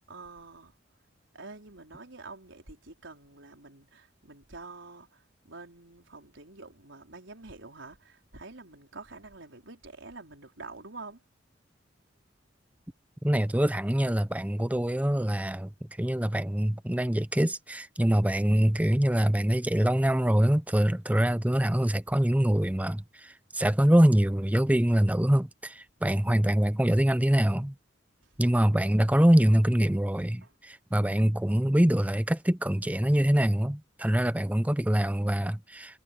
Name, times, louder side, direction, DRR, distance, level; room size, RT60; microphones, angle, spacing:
voice 1, 0.1-0.8 1.3-11.2 28.2-28.3 30.4-30.6, right 3 dB, 85° right, 4.5 m, -47 dB
voice 2, 13.2-15.7 16.0-27.7 28.4-36.0, equal, 10° right, 0.7 m, -24 dB
head